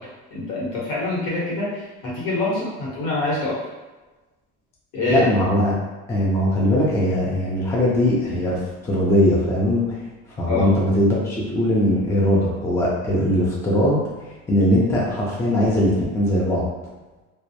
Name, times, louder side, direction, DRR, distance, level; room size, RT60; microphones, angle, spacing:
voice 1, 0.3-3.5 4.9-5.3 10.4-10.7, left 2 dB, 80° left, -6 dB, 1.1 m, -25 dB
voice 2, 5.1-5.7 6.1-10.0 10.4-14.0 14.5-16.7, left 1 dB, 10° left, -5 dB, 0.3 m, -20 dB
2.2 x 2.0 x 2.7 m, 1.2 s
cardioid pair, 150°, 31 cm